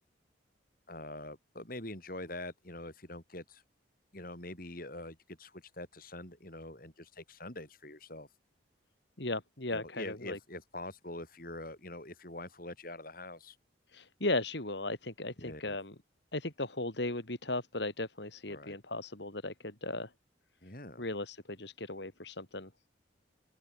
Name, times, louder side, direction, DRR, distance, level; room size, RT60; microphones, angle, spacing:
voice 1, 0.9-3.6 4.1-8.3 9.7-13.6 15.4-15.8 18.5-18.8 20.6-21.1, left 1 dB, 45° left, 6.1 m, -44 dB
voice 2, 9.2-10.4 13.9-15.9 16.3-20.1 21.0-22.7, left 2 dB, 65° left, 3.7 m, -36 dB
open air
head